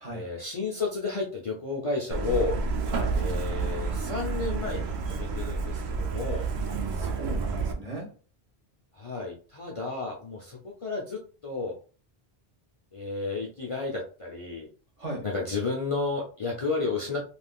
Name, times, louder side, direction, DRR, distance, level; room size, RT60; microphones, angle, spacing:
voice 1, 0.1-2.6 3.1-6.5 8.9-11.8 12.9-14.7 15.2-17.3, left 3 dB, 40° left, -2 dB, 0.5 m, -32 dB
Truck, 2.1-7.7, right 4 dB, 85° right, 0.9 m, -30 dB
voice 2, 2.9-3.2 6.9-8.1 15.0-15.2, right 1 dB, 40° right, -1 dB, 1.1 m, -37 dB
3.4 x 2.5 x 2.3 m, 0.38 s
omnidirectional pair, 1.0 m